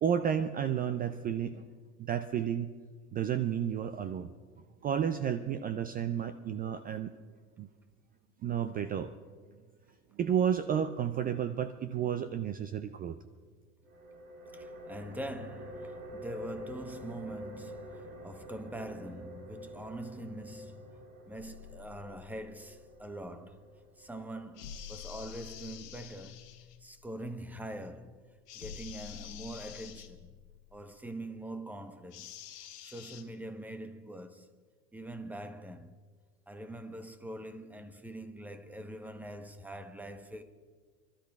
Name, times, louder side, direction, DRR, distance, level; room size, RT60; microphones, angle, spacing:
voice 1, 0.0-1.7 2.0-2.7 3.1-4.3 4.8-7.1 7.6-7.7 8.4-9.1 10.1-13.2, right 8 dB, 20° right, 0.3 m, -31 dB
sound 1, 13.8-25.2, equal, 65° right, 4.3 m, -48 dB
voice 2, 14.5-20.8 21.3-23.7 24.0-26.5 26.8-28.2 28.5-30.3 30.7-32.4 32.8-34.6 34.9-35.9 36.5-40.4, right 1 dB, 5° right, 1.0 m, -43 dB
sound 2, 21.4-31.0, left 9 dB, 60° left, 1.4 m, -51 dB
sound 3, 24.5-26.8 28.5-30.1 32.1-33.2, left 10 dB, 80° left, 1.4 m, -49 dB
28.0 x 12.5 x 2.4 m
hypercardioid pair, 90°, 47 cm